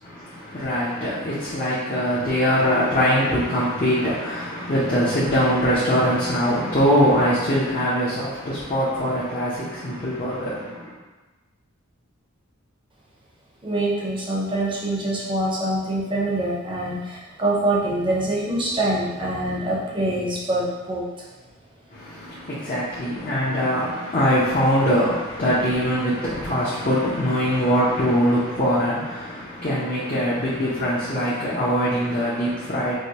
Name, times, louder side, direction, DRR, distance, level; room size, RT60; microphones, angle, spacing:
voice 1, 0.0-10.9 21.9-32.9, equal, 40° left, -9 dB, 0.7 m, -22 dB
voice 2, 13.6-21.3, right 1 dB, 25° right, -4 dB, 0.6 m, -25 dB
4.8 x 2.2 x 2.8 m, 1.2 s
head